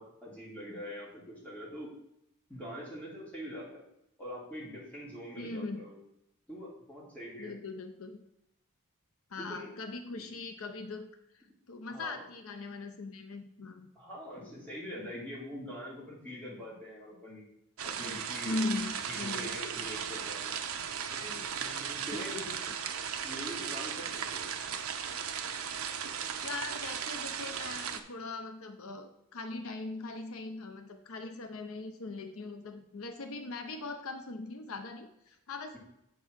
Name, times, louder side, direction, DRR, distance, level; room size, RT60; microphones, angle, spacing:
voice 1, 0.0-1.9 2.5-3.8 4.2-6.0 6.5-7.6 9.4-9.7 10.1-10.2 11.9-12.2 14.0-17.4 17.8-18.6 19.1-20.6 21.1-22.4 23.2-24.5, equal, 5° left, -6 dB, 2.4 m, -43 dB
voice 2, 5.4-5.8 7.4-8.2 9.3-11.1 11.3-13.9 18.4-19.5 22.1-22.8 26.4-35.8, left 3 dB, 75° left, 7 dB, 0.7 m, -40 dB
sound 1, 17.8-28.0, right 7 dB, 75° right, 0.7 m, -37 dB
8.2 x 3.9 x 6.2 m, 0.81 s
head